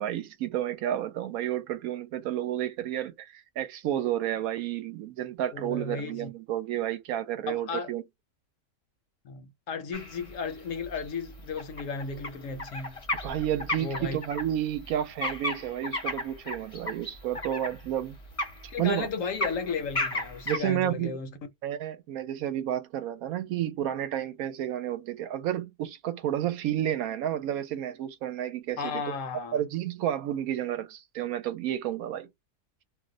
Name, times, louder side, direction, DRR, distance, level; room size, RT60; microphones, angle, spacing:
voice 1, 0.0-8.0 13.2-18.2 18.8-19.1 20.5-21.2 21.6-29.0 29.5-32.3, right 11 dB, 75° right, 1.0 m, -31 dB
voice 2, 5.5-6.3 7.5-7.9 9.2-13.0 13.8-14.2 18.7-21.4 28.8-29.6, left 5 dB, 65° left, 0.9 m, -34 dB
sound 1, 9.9-20.6, left 1 dB, 30° left, 0.6 m, -35 dB
2.5 x 2.1 x 3.7 m
omnidirectional pair, 1.6 m